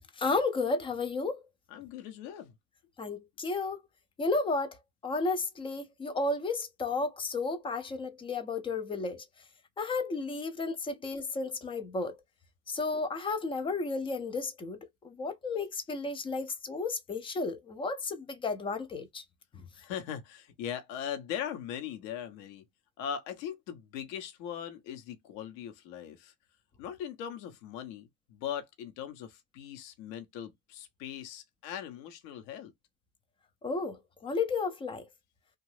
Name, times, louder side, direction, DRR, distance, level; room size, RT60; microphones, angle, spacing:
voice 1, 0.2-1.4 3.0-3.8 4.2-9.2 9.8-12.2 12.7-19.2 33.6-35.1, left 3 dB, 15° left, 0.3 m, -33 dB
voice 2, 1.7-2.5 19.7-22.6 23.0-26.3 26.8-32.7, left 9 dB, 60° left, 0.9 m, -40 dB
2.6 x 2.3 x 3.1 m
hypercardioid pair, 85°, 43 cm